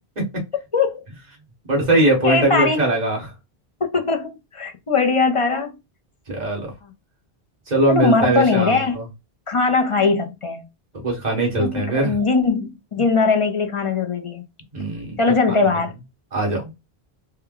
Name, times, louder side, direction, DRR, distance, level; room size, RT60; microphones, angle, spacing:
voice 1, 1.7-3.3 6.3-6.7 7.7-9.0 11.0-12.1 14.7-15.2 15.5-15.6 16.3-16.6, right 2 dB, 40° right, 1.7 m, -21 dB
voice 2, 2.2-2.9 3.8-5.7 6.8-6.9 7.9-9.0 9.5-10.6 11.6-14.4 15.2-15.9, left 4 dB, 35° left, 0.6 m, -20 dB
4.2 x 2.2 x 3.8 m
omnidirectional pair, 1.0 m